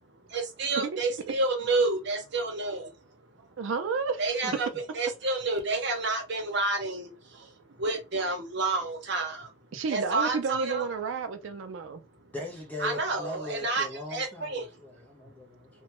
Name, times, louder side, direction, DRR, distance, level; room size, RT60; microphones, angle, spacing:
voice 1, 0.3-2.9 4.2-4.7 4.9-9.5 9.9-10.8 12.8-14.7, right 3 dB, 55° right, 0.8 m, -29 dB
voice 2, 3.6-4.5 9.7-12.0, right 5 dB, 75° right, 0.4 m, -31 dB
voice 3, 12.3-15.7, left 2 dB, 10° left, 0.8 m, -39 dB
3.0 x 2.2 x 2.9 m
head